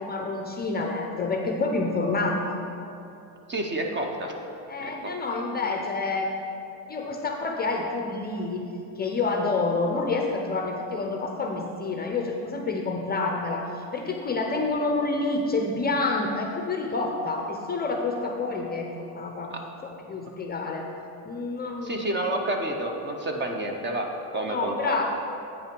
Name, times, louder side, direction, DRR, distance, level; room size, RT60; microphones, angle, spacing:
voice 1, 0.0-2.6 4.7-6.3 6.9-8.6 9.0-19.5 20.0-20.9 21.2-22.0 24.5-25.0, left 3 dB, 20° left, 2 dB, 0.5 m, -28 dB
voice 2, 3.5-4.3 4.8-5.1 19.5-19.6 21.8-25.0, right 1 dB, 25° right, 3 dB, 0.6 m, -29 dB
8.4 x 5.3 x 5.2 m, 2.8 s
supercardioid pair, 125°, 47 cm